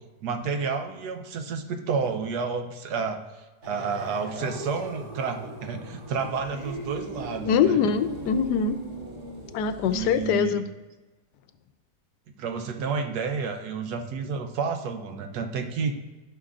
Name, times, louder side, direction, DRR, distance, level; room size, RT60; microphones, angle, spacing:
voice 1, 0.2-7.8 9.9-10.6 12.4-16.0, right 5 dB, 75° right, 6 dB, 1.3 m, -30 dB
sound 1, 3.6-10.4, right 2 dB, 30° right, 2.5 m, -39 dB
voice 2, 7.4-8.8 9.5-10.6, left 7 dB, 85° left, 11 dB, 1.2 m, -23 dB
12.0 x 5.7 x 2.5 m, 1.2 s
omnidirectional pair, 1.7 m